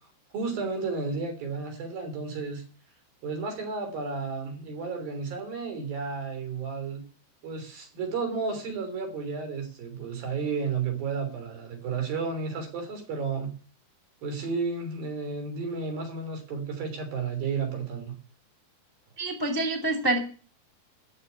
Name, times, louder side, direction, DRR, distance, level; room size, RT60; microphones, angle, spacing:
voice 1, 0.3-2.6 3.2-7.0 7.4-13.5 14.2-18.2, right 5 dB, 60° right, 5 dB, 5.0 m, -32 dB
voice 2, 19.2-20.2, right 2 dB, 10° left, 2 dB, 1.2 m, -26 dB
13.5 x 6.9 x 9.5 m, 0.40 s
omnidirectional pair, 4.7 m